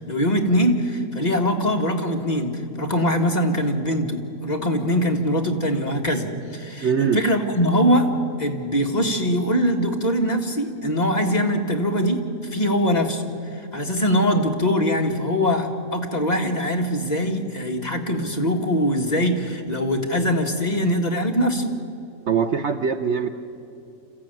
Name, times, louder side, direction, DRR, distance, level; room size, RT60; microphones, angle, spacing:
voice 1, 0.0-8.1 8.4-12.2 12.5-13.2 13.5-21.8, equal, 30° left, 2 dB, 1.8 m, -22 dB
voice 2, 6.8-7.2 22.3-23.3, right 6 dB, 55° right, 8 dB, 0.9 m, -22 dB
27.0 x 15.0 x 9.2 m, 2.6 s
omnidirectional pair, 1.6 m